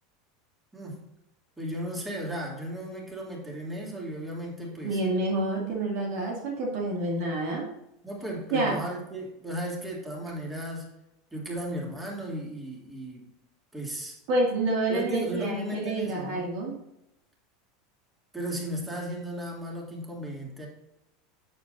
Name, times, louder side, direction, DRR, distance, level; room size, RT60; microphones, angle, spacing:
voice 1, 1.6-5.0 8.0-10.9 11.3-13.3 13.7-14.2 14.9-16.5 18.3-20.7, right 1 dB, 10° right, -2 dB, 3.0 m, -35 dB
voice 2, 4.8-7.7 8.5-8.8 14.3-16.8, right 2 dB, 60° right, -1 dB, 2.5 m, -28 dB
9.0 x 7.6 x 2.7 m, 0.86 s
hypercardioid pair, 90°, 0 cm